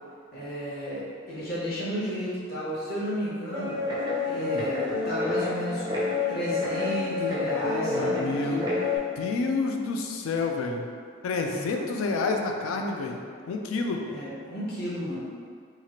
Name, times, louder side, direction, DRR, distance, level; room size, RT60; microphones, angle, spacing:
voice 1, 0.3-3.8 4.3-5.9 6.3-8.7 11.4-11.9 14.1-15.3, equal, 50° left, -8 dB, 0.8 m, -33 dB
Guitar, 3.5-9.0, left 3 dB, 20° right, 0.4 m, -28 dB
voice 2, 7.8-8.6 9.2-10.8 11.2-13.2 13.5-14.0, left 3 dB, 85° left, 3 dB, 0.3 m, -29 dB
2.9 x 2.3 x 2.9 m, 2.1 s
head